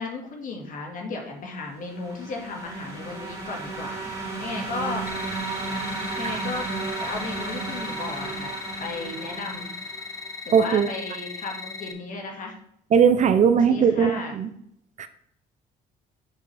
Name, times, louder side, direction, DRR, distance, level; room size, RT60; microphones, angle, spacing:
voice 1, 0.0-4.0 4.4-5.0 6.2-6.7 7.0-9.7 10.4-12.5 13.7-14.4, left 3 dB, 55° left, 1 dB, 2.0 m, -35 dB
sound 1, 1.7-10.4, right 3 dB, 20° right, 3.2 m, -34 dB
sound 2, 5.1-11.9, left 4 dB, 20° left, 0.8 m, -38 dB
voice 2, 10.5-10.9 12.9-14.5 15.0-15.1, right 7 dB, 45° right, 10 dB, 0.6 m, -19 dB
8.2 x 5.5 x 3.4 m, 0.71 s
cardioid pair, 110°, 17 cm